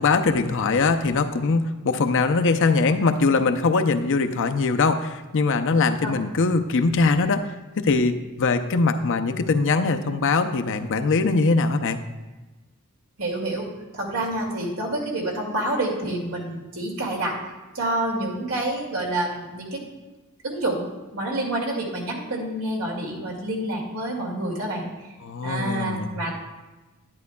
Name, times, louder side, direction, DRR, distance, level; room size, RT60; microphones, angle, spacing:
voice 1, 0.0-12.0 25.2-26.1, left 4 dB, 60° left, 7 dB, 0.5 m, -22 dB
voice 2, 13.2-13.7 13.9-17.3 17.7-19.8 20.4-25.1 25.4-26.3, right 1 dB, 80° right, -2 dB, 2.3 m, -28 dB
10.5 x 10.5 x 2.3 m, 1.2 s
head